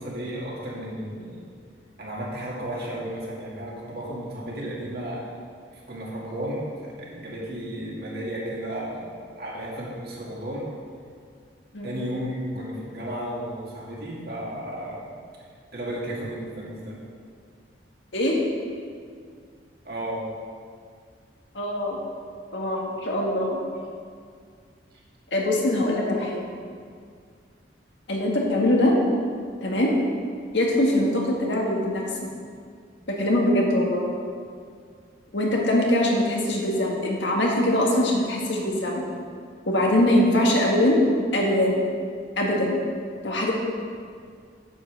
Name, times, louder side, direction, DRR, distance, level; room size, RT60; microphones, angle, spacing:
voice 1, 0.0-1.5 2.0-5.2 5.7-10.6 11.8-15.1 15.7-17.0 19.8-20.2, equal, 55° right, -4 dB, 2.2 m, -33 dB
voice 2, 21.6-22.0 22.5-23.6 25.3-26.4 28.1-28.9 29.6-29.9 30.5-32.3 33.1-34.1 35.3-39.0 39.7-41.0 41.3-41.9 42.4-42.8 43.2-43.5, left 1 dB, 75° left, -2 dB, 1.8 m, -22 dB
9.2 x 5.6 x 6.6 m, 2.1 s
head